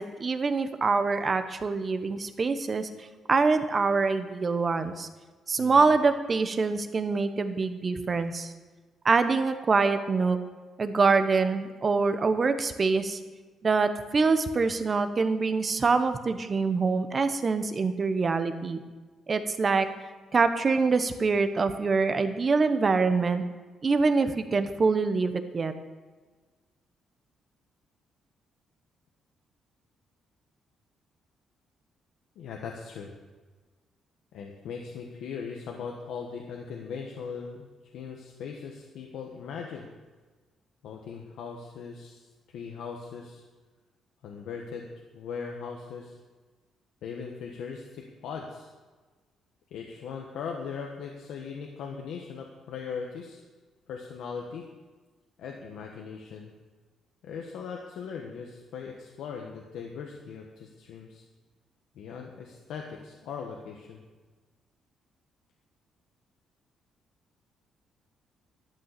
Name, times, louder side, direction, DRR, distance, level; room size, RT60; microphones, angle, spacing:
voice 1, 0.0-2.9 3.3-5.1 5.5-8.5 9.0-10.4 10.8-13.2 13.6-18.8 19.3-19.9 20.3-23.4 23.8-25.7, right 4 dB, 30° right, 9 dB, 1.0 m, -25 dB
voice 2, 5.6-5.9 32.3-33.1 34.3-37.7 37.9-39.9 40.8-42.3 42.5-43.4 44.2-44.9 45.1-46.2 47.0-48.7 49.7-53.4 53.9-54.7 55.4-56.5 57.2-61.2 61.9-64.0, left 6 dB, 80° left, 1 dB, 1.3 m, -39 dB
12.0 x 8.8 x 6.7 m, 1.3 s
cardioid pair, 120°, 0 cm